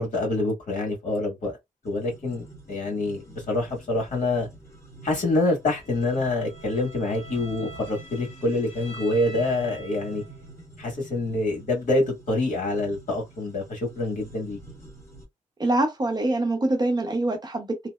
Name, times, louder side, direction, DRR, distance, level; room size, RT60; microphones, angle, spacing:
voice 1, 0.0-1.6 1.8-4.5 5.0-10.2 10.8-14.6, left 2 dB, 70° left, 1.6 m, -26 dB
sound 1, 1.8-15.2, right 3 dB, 20° left, 1.1 m, -47 dB
Bowed string instrument, 5.8-10.5, equal, 45° left, 1.5 m, -45 dB
voice 2, 15.6-17.9, right 2 dB, 30° right, 0.7 m, -24 dB
2.8 x 2.0 x 2.2 m
wide cardioid pair, 130°, 13 cm